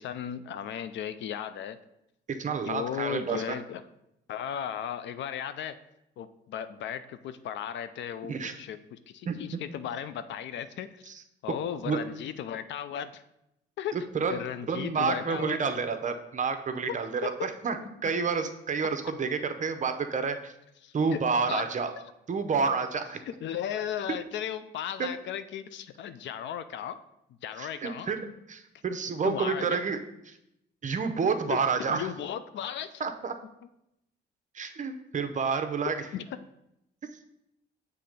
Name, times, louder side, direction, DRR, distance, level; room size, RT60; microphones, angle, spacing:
voice 1, 0.0-1.8 2.6-3.8 4.3-5.8 6.2-11.0 11.4-13.2 13.8-14.0 14.3-15.6 16.9-17.0 20.8-21.2 21.5-21.6 22.0-22.1 23.3-27.0 27.4-28.1 29.2-29.8 31.5-31.6 31.9-33.0 36.1-36.4, left 9 dB, 65° left, 12 dB, 0.4 m, -36 dB
voice 2, 2.4-3.6 8.3-8.5 9.3-9.4 11.1-11.2 11.8-12.0 13.9-14.4 14.7-17.8 18.0-20.5 20.9-21.9 22.3-23.2 25.0-25.1 27.6-30.0 30.3-30.4 30.8-32.1 33.0-33.3 34.5-36.0, right 5 dB, 40° right, 8 dB, 0.7 m, -29 dB
6.8 x 3.3 x 5.1 m, 0.84 s
cardioid pair, 90°, 20 cm